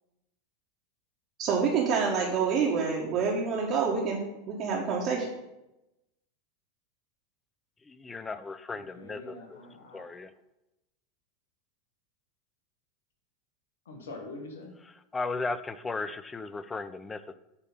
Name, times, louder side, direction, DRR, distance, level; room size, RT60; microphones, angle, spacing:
voice 1, 1.4-4.2 4.5-5.3, right 5 dB, 50° right, -4 dB, 1.6 m, -27 dB
voice 2, 7.9-9.6 9.9-10.3 15.1-17.3, left 3 dB, 15° left, 13 dB, 0.5 m, -36 dB
voice 3, 8.7-10.1 13.8-14.8, left 2 dB, 85° left, 2 dB, 1.2 m, -44 dB
8.2 x 3.7 x 5.6 m, 0.92 s
hypercardioid pair, 95°, 0 cm